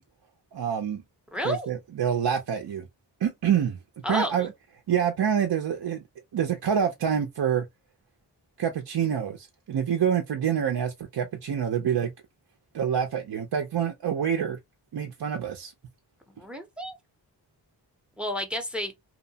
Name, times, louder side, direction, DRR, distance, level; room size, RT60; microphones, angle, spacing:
voice 1, 0.5-1.0 1.4-2.9 3.2-3.8 4.1-4.5 4.9-6.0 6.3-7.7 8.6-12.1 12.7-14.6 14.9-15.7, right 8 dB, 60° right, 0.5 m, -26 dB
voice 2, 1.3-1.7 4.0-4.5 16.4-17.0 18.2-18.9, left 1 dB, ahead, 0.6 m, -31 dB
2.8 x 2.0 x 2.7 m
wide cardioid pair, 90°, 44 cm